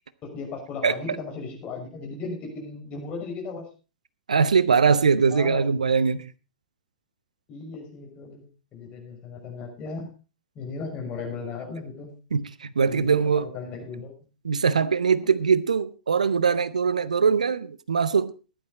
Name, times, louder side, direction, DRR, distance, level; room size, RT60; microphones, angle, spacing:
voice 1, 0.2-3.7 5.3-5.7 7.5-8.4 8.7-10.1 10.6-12.1 12.8-14.1, left 4 dB, 30° left, 5.8 m, -36 dB
voice 2, 0.8-1.2 4.3-6.3 12.3-13.5 14.4-18.3, right 5 dB, 75° right, 0.7 m, -22 dB
14.5 x 11.5 x 4.0 m
figure-of-eight pair, 100°, 4 cm